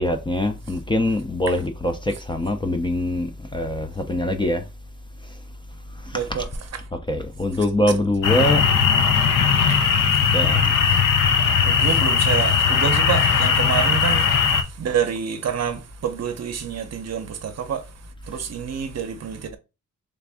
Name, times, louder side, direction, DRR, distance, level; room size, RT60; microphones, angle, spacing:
voice 1, 0.0-4.7 6.0-6.3 7.1-8.6 10.3-10.7, left 1 dB, 15° left, 0.4 m, -23 dB
voice 2, 6.1-6.5 9.7-10.4 10.9-11.1 11.6-19.6, right 7 dB, 55° right, 0.6 m, -28 dB
sound 1, 8.2-14.6, left 6 dB, 85° left, 0.6 m, -19 dB
3.4 x 2.5 x 3.4 m
wide cardioid pair, 125°, 31 cm